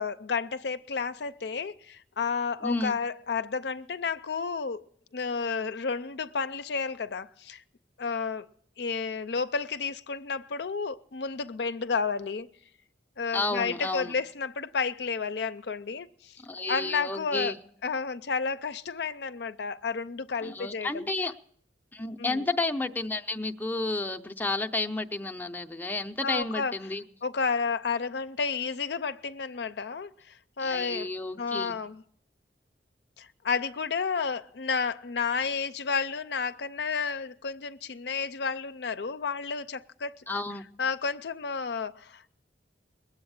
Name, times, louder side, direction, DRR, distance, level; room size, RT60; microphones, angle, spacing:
voice 1, 0.0-4.8 5.1-7.6 8.0-8.5 8.8-12.5 13.2-17.5 17.8-21.1 22.2-22.4 26.2-26.8 27.2-31.1 31.4-32.0 33.2-40.3 40.8-42.3, left 5 dB, 70° left, 0.5 m, -31 dB
voice 2, 2.6-3.0 13.3-14.1 16.4-17.6 20.4-21.3 21.9-27.0 30.6-31.8 40.3-40.6, left 2 dB, 10° left, 0.6 m, -31 dB
21.0 x 8.0 x 8.7 m
head